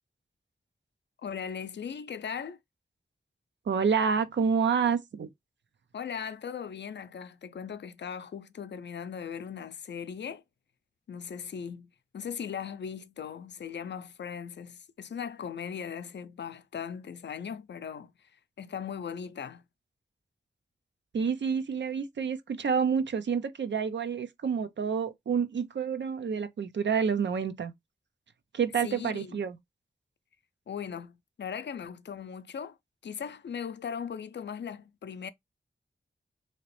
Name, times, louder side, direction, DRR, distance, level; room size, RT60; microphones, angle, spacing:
voice 1, 1.2-2.6 5.9-10.4 11.1-19.6 28.8-29.4 30.7-32.8 33.0-35.3, left 7 dB, 75° left, 0.4 m, -39 dB
voice 2, 3.7-5.3 21.1-27.7 28.5-29.6, right 6 dB, 80° right, 0.5 m, -28 dB
2.9 x 2.9 x 3.0 m
wide cardioid pair, 80°, 18 cm